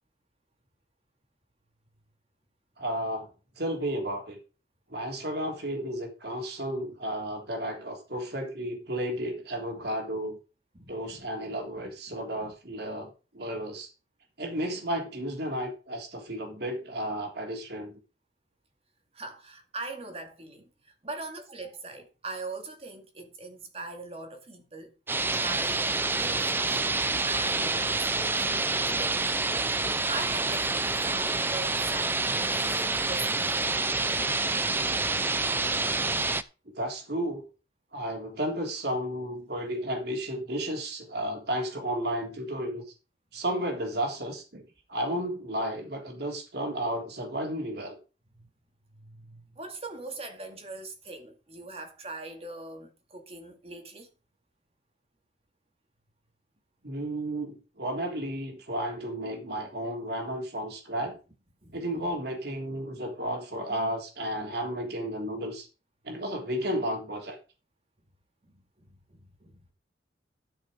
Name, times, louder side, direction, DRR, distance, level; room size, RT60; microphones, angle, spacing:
voice 1, 2.8-3.3 3.6-4.4 4.9-10.4 10.9-13.9 14.4-18.0 36.6-37.4 37.9-42.8 43.3-48.0 56.8-61.2 61.7-65.7 66.0-67.4, right 1 dB, 60° right, 3.4 m, -33 dB
voice 2, 10.7-11.6 12.1-12.5 19.1-24.9 25.2-26.8 27.3-29.4 29.8-33.8 48.4-48.5 48.9-54.1 61.6-62.1 62.9-63.0 68.4-69.7, right 3 dB, 35° right, 2.3 m, -42 dB
sound 1, 25.1-36.4, right 3 dB, 10° right, 0.5 m, -27 dB
13.0 x 6.5 x 5.1 m
head